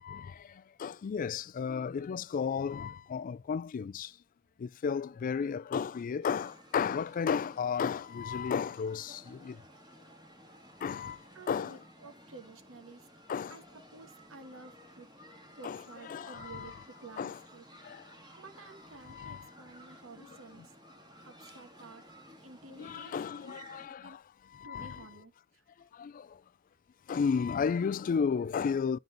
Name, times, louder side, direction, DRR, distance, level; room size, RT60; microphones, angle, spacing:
voice 1, 0.0-4.1 4.6-9.6 10.8-11.8 13.3-13.6 15.6-16.8 17.2-17.4 17.8-18.1 19.0-19.5 22.8-24.2 24.5-25.1 25.9-26.4 27.1-29.0, left 6 dB, 40° left, 0.3 m, -33 dB
sound 1, 6.2-23.9, equal, 20° right, 1.8 m, -55 dB
voice 2, 11.3-13.1 13.5-17.7 18.4-20.7 21.2-22.0 22.4-24.2 24.6-25.6, right 3 dB, 75° right, 1.3 m, -52 dB
9.4 x 4.0 x 3.8 m
head